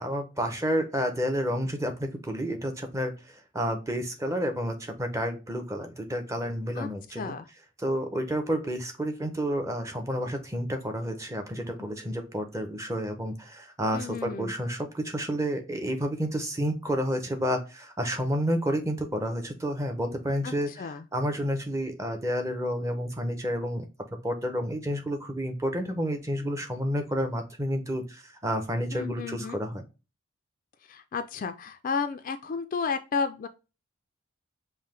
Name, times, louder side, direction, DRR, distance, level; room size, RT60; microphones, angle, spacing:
voice 1, 0.0-7.3 7.8-23.9 24.2-29.8, equal, 15° right, 5 dB, 0.6 m, -30 dB
voice 2, 7.2-7.5 13.9-14.5 20.4-21.1 28.9-29.6 30.9-33.5, left 5 dB, 40° left, 9 dB, 0.3 m, -32 dB
5.5 x 2.1 x 3.2 m, 0.29 s
head